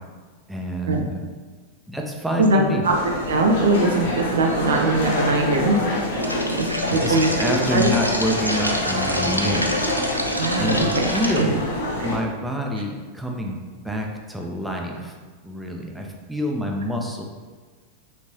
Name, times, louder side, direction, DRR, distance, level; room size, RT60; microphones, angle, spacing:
voice 1, 0.5-1.2 1.9-2.8 6.9-9.9 10.6-10.9 11.1-11.6 12.0-13.6 13.8-15.1 15.4-17.2, equal, 5° right, 0 dB, 0.4 m, -27 dB
voice 2, 2.4-3.0 3.3-5.8 6.6-7.9 10.4-11.1 11.4-11.6 12.0-12.1, right 2 dB, 65° right, 2 dB, 0.4 m, -21 dB
sound 1, 2.8-12.2, left 1 dB, 60° left, 0.7 m, -27 dB
sound 2, 6.2-11.4, left 1 dB, 90° left, 0.3 m, -27 dB
3.4 x 3.0 x 2.6 m, 1.4 s
figure-of-eight pair, 90°, 0 cm